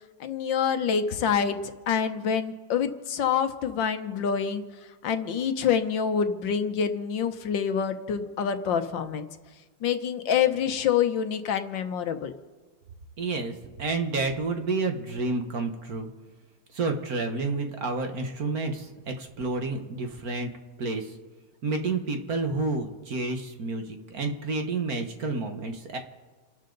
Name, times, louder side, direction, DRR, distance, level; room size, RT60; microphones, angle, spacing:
voice 1, 0.2-4.6 5.0-9.3 9.8-12.3, left 7 dB, 70° left, 8 dB, 1.6 m, -26 dB
voice 2, 13.2-16.1 16.7-20.5 20.8-21.1 21.6-26.0, right 3 dB, 50° right, 5 dB, 1.6 m, -30 dB
29.5 x 12.0 x 3.9 m, 1.4 s
omnidirectional pair, 2.2 m